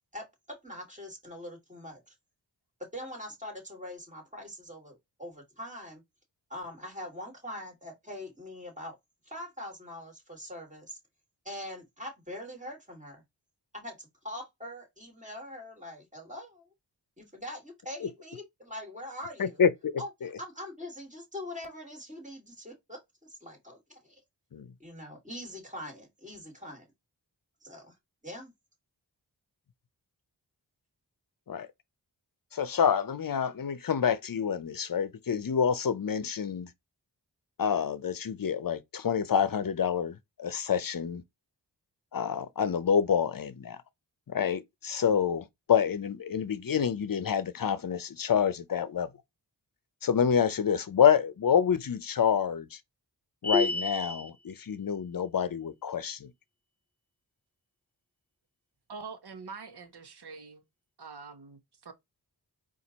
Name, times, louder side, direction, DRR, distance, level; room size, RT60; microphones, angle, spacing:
voice 1, 0.1-2.1 2.8-6.0 6.5-8.9 9.3-11.0 11.4-13.2 13.7-16.6 17.2-19.6 20.0-20.1 20.4-24.2 24.8-26.9 27.6-28.0 28.2-28.5, left 1 dB, 15° right, 2.6 m, -43 dB
voice 2, 19.4-20.3 24.5-24.7 31.5-31.7 32.5-36.7 37.6-41.2 42.1-43.8 44.3-49.1 50.0-52.8 53.4-56.3, left 7 dB, 50° left, 0.6 m, -27 dB
sound 1, 53.4-54.3, left 2 dB, 5° left, 0.6 m, -29 dB
voice 3, 58.9-60.6 61.0-61.9, right 5 dB, 65° right, 0.9 m, -45 dB
4.3 x 2.5 x 3.9 m
cardioid pair, 45°, 43 cm